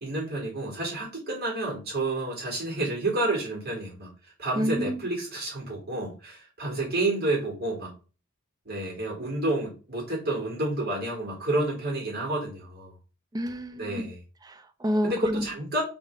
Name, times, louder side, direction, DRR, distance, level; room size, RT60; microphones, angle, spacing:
voice 1, 0.0-4.1 4.4-7.9 8.7-12.9 13.8-14.2 15.0-15.8, right 2 dB, 50° right, 2.5 m, -30 dB
voice 2, 4.6-5.0 13.3-14.1 14.4-15.5, equal, 20° right, 0.4 m, -29 dB
3.7 x 3.7 x 3.5 m
head